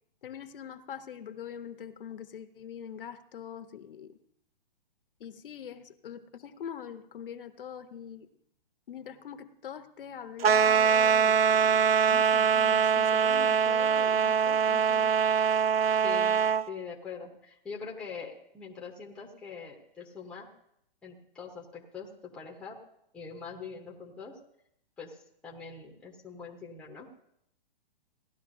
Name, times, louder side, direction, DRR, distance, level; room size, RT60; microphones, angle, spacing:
voice 1, 0.2-4.2 5.2-8.3 8.9-11.8 12.1-15.1, left 8 dB, 65° left, 9 dB, 0.9 m, -43 dB
sound 1, 10.4-16.6, right 7 dB, 85° right, 0.6 m, -23 dB
voice 2, 16.0-16.3 16.7-20.5 21.0-22.8 23.1-24.4 25.0-25.2 25.4-27.1, left 5 dB, 5° left, -2 dB, 0.8 m, -43 dB
17.0 x 11.5 x 2.6 m, 0.74 s
hypercardioid pair, 155°, 29 cm